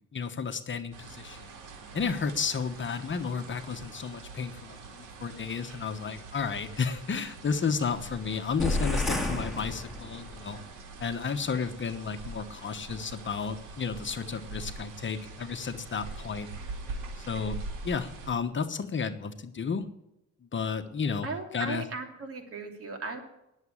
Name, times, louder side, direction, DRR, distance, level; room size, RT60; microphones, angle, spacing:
voice 1, 0.0-1.5 1.9-10.6 11.0-16.5 17.2-17.6 17.8-19.8 20.5-21.3 21.5-21.8, left 5 dB, 40° left, 9 dB, 1.2 m, -32 dB
sound 1, 0.9-18.3, right 3 dB, 85° right, 2.8 m, -44 dB
sound 2, 8.6-10.4, left 2 dB, ahead, 2.6 m, -30 dB
voice 2, 21.2-23.2, right 3 dB, 50° right, 4 dB, 2.9 m, -37 dB
10.5 x 7.4 x 9.7 m, 0.87 s
cardioid pair, 90°, 30 cm